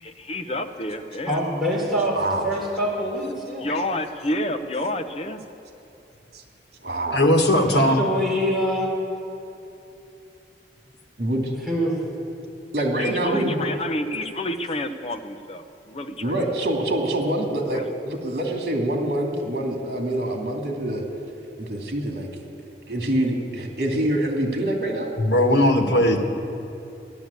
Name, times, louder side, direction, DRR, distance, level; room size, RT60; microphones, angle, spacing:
voice 1, 0.0-1.4 3.6-5.4 13.0-16.4 17.7-17.8, left 1 dB, 35° left, 7 dB, 0.8 m, -29 dB
voice 2, 1.3-2.2 2.4-3.7 7.7-8.9 11.5-12.0, equal, ahead, -6 dB, 3.8 m, -25 dB
voice 3, 2.1-2.5 6.3-6.4 6.8-7.2 11.2-11.5 12.7-13.7 16.2-21.0 21.6-22.3 22.9-25.1, right 1 dB, 65° right, 1 dB, 2.6 m, -25 dB
voice 4, 7.1-8.0 25.2-26.2, left 1 dB, 80° left, 4 dB, 1.5 m, -18 dB
14.5 x 11.0 x 8.4 m, 2.9 s
head